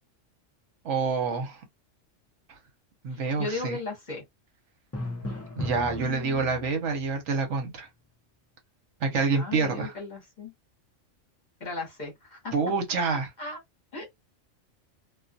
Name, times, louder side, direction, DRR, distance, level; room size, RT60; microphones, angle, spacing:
voice 1, 0.8-1.6 3.0-3.8 5.6-7.9 9.0-10.0 12.5-13.3, right 4 dB, 75° right, 1.0 m, -27 dB
voice 2, 3.4-4.2 9.1-10.5 11.6-12.5 13.4-13.6 13.9-14.0, left 3 dB, 40° left, 0.9 m, -36 dB
Drum, 4.9-6.9, left 1 dB, 20° left, 0.4 m, -36 dB
2.3 x 2.3 x 2.6 m
omnidirectional pair, 1.3 m